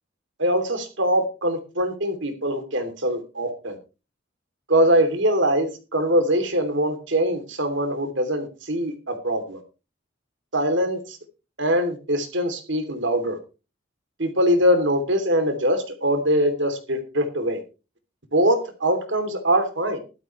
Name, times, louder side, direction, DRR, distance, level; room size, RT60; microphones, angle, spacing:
voice 1, 0.4-3.8 4.7-9.6 10.5-11.2 11.6-13.4 14.2-17.6 18.3-20.0, equal, 60° right, 7 dB, 3.0 m, -22 dB
15.5 x 13.0 x 3.2 m, 0.31 s
head